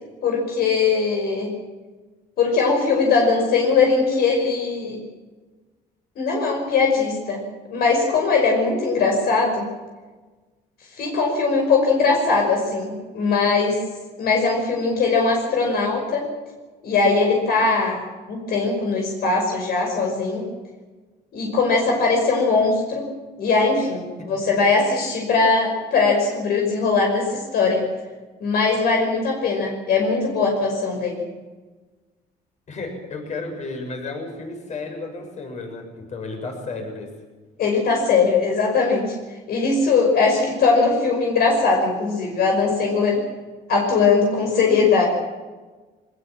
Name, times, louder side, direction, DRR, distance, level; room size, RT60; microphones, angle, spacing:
voice 1, 0.2-1.5 2.4-5.0 6.2-7.4 7.7-9.7 11.0-13.8 14.2-16.2 16.8-18.0 18.3-20.5 21.3-23.1 23.4-27.9 28.4-31.2 37.6-39.1 39.5-43.2 43.7-45.1, left 4 dB, 65° left, 1 dB, 5.6 m, -20 dB
voice 2, 24.2-24.5 32.7-37.1, left 3 dB, 45° left, 4 dB, 7.0 m, -33 dB
22.5 x 20.5 x 7.5 m, 1.3 s
cardioid pair, 110°, 17 cm